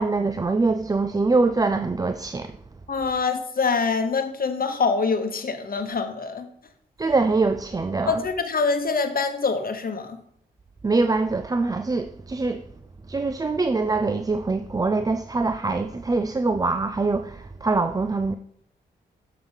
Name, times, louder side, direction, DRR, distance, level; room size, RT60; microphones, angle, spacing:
voice 1, 0.0-2.5 7.0-8.2 10.8-12.6 13.1-18.3, right 3 dB, 20° right, 0.4 m, -23 dB
voice 2, 2.9-6.5 8.1-10.2, left 4 dB, 50° left, 1.0 m, -25 dB
7.0 x 5.6 x 3.5 m
supercardioid pair, 40°, 20 cm